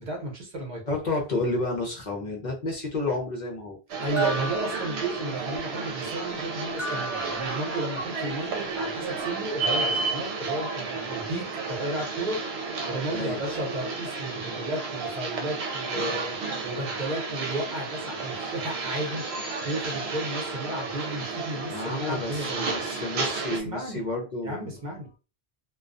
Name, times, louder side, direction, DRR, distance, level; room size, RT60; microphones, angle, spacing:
voice 1, 0.0-0.8 4.0-12.4 12.9-16.4 16.6-22.8 23.5-24.1 24.4-25.1, right 1 dB, 50° right, -1 dB, 0.9 m, -33 dB
voice 2, 0.9-3.8 13.1-13.4 21.6-24.8, left 2 dB, 50° left, -1 dB, 0.7 m, -31 dB
sound 1, 3.9-23.6, right 4 dB, 80° right, 0.8 m, -32 dB
sound 2, 4.2-5.6 6.8-8.2, left 1 dB, ahead, 0.5 m, -37 dB
2.3 x 2.2 x 2.5 m, 0.32 s
omnidirectional pair, 1.0 m